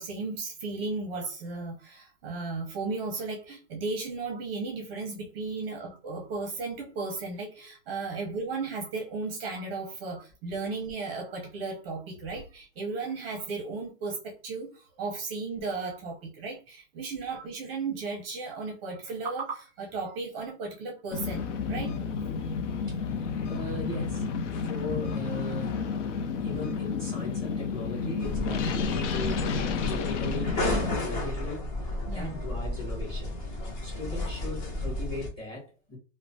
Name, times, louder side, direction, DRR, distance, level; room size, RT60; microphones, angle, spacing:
voice 1, 0.0-21.9 32.1-32.4, right 3 dB, 25° right, 0.6 m, -35 dB
sound 1, 21.1-31.0, left 5 dB, 75° left, 0.6 m, -31 dB
voice 2, 23.4-25.8 26.4-31.7 32.1-33.3 33.8-36.0, left 2 dB, 10° left, 1.0 m, -38 dB
sound 2, 28.2-35.3, left 1 dB, 30° left, 0.8 m, -33 dB
3.1 x 2.1 x 2.6 m
hypercardioid pair, 165°, 37 cm